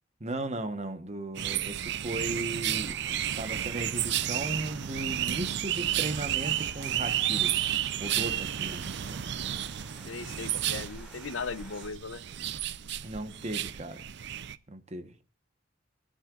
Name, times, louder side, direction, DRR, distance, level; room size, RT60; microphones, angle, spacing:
voice 1, 0.2-3.0 3.3-7.6 8.0-9.2 13.0-14.1 14.7-15.1, right 2 dB, 35° right, 1.2 m, -36 dB
sound 1, 1.3-14.6, right 11 dB, 65° right, 0.5 m, -32 dB
sound 2, 2.8-11.9, equal, 5° right, 6.2 m, -53 dB
voice 2, 10.1-12.2, left 4 dB, 90° left, 0.7 m, -38 dB
27.0 x 9.8 x 2.5 m
head